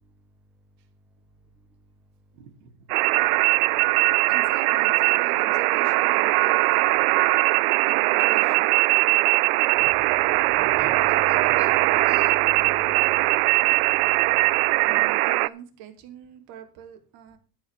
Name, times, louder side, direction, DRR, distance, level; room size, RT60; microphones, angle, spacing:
voice 1, 2.3-3.0 4.2-6.9 7.9-8.7 14.3-14.5 14.8-17.4, right 8 dB, 55° right, 5 dB, 2.8 m, -42 dB
sound 1, 2.9-15.5, right 21 dB, 85° right, 0.6 m, -20 dB
voice 2, 9.8-13.9 14.6-14.9, right 1 dB, 5° right, 2 dB, 0.8 m, -43 dB
13.5 x 5.5 x 7.5 m, 0.38 s
cardioid pair, 175°, 44 cm